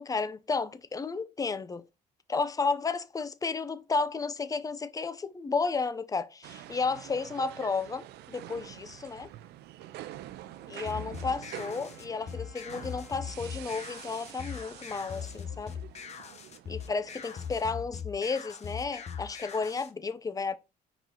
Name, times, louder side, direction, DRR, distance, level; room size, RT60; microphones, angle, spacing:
voice 1, 0.0-1.8 2.3-9.3 10.7-15.8 16.7-20.6, left 4 dB, 20° left, 0.7 m, -32 dB
sound 1, 6.4-17.7, right 13 dB, 80° right, 0.6 m, -46 dB
Wind instrument woodwind instrument, 10.4-16.1, left 1 dB, ahead, 1.4 m, -60 dB
sound 2, 10.9-19.9, left 7 dB, 40° left, 1.3 m, -41 dB
4.8 x 4.4 x 5.1 m
cardioid pair, 110°, 17 cm